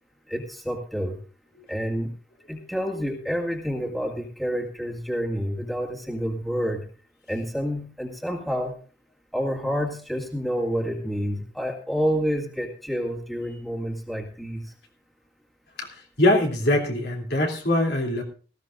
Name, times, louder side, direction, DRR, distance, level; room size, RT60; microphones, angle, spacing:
voice 1, 0.3-1.2 1.7-2.1 2.5-6.9 7.3-8.7 9.3-14.7, equal, ahead, 0 dB, 1.9 m, -28 dB
voice 2, 15.8-18.2, left 1 dB, 75° left, 0 dB, 3.0 m, -23 dB
18.5 x 15.0 x 2.6 m, 0.38 s
head